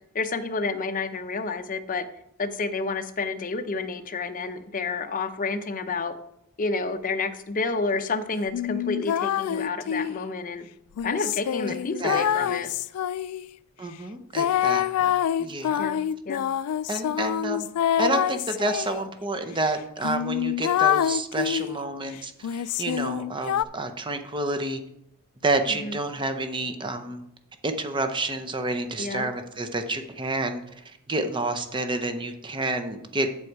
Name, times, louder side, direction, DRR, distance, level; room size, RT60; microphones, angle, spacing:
voice 1, 0.1-2.1 2.4-6.1 6.6-10.7 11.0-12.7 15.8-16.0 16.3-16.4 25.7-26.0 29.0-29.3, left 3 dB, 40° left, 9 dB, 0.7 m, -29 dB
sound 1, 8.5-10.2 11.0-13.5 14.4-19.0 19.6-19.7 20.0-21.8 22.4-23.6, left 10 dB, 80° left, 0.3 m, -26 dB
voice 2, 13.8-15.8 16.9-17.7 18.0-24.8 25.4-27.2 27.6-33.3, right 2 dB, 20° right, 7 dB, 0.7 m, -29 dB
7.9 x 7.0 x 4.7 m, 0.78 s
head